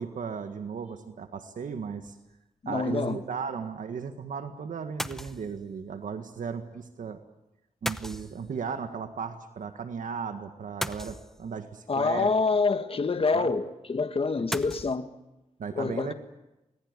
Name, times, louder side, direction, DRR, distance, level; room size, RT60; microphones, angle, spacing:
voice 1, 0.0-2.2 2.7-7.2 7.8-12.3 13.3-13.5 15.6-16.1, right 6 dB, 80° right, 1.7 m, -36 dB
sound 1, 2.1-2.3 5.0-5.7 7.9-8.8 10.8-11.7 14.5-15.0, equal, 5° left, 0.9 m, -36 dB
voice 2, 2.6-3.2 11.9-15.1 15.7-16.1, left 4 dB, 45° left, 1.6 m, -26 dB
25.0 x 21.0 x 9.7 m
cardioid pair, 85°, 13 cm